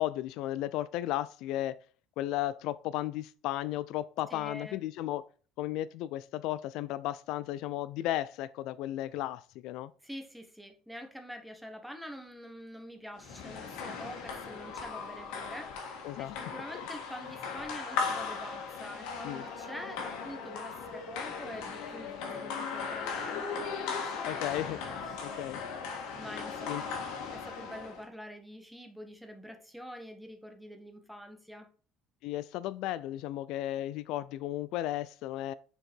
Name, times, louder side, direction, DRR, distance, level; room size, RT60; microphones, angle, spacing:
voice 1, 0.0-1.8 2.2-5.2 5.6-9.9 16.0-16.5 19.2-19.4 24.2-24.8 25.2-25.6 26.7-26.8 32.2-35.5, left 14 dB, 70° left, 0.3 m, -34 dB
voice 2, 4.3-4.8 10.0-24.0 24.9-25.3 26.1-27.0 27.3-31.7, equal, ahead, 1.0 m, -46 dB
sound 1, 13.2-28.0, left 5 dB, 85° left, 1.8 m, -38 dB
6.4 x 4.6 x 4.4 m
cardioid pair, 155°, 0 cm